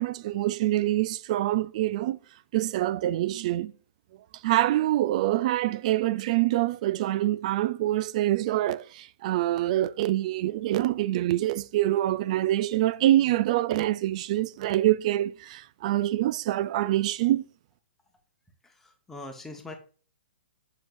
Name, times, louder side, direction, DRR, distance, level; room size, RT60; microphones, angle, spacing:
voice 1, 0.0-2.2 2.5-3.7 4.4-17.4, right 14 dB, 40° right, 0.3 m, -25 dB
voice 2, 18.6-19.8, left 2 dB, 5° left, 1.1 m, -42 dB
7.4 x 6.1 x 2.5 m
hypercardioid pair, 160°, 6 cm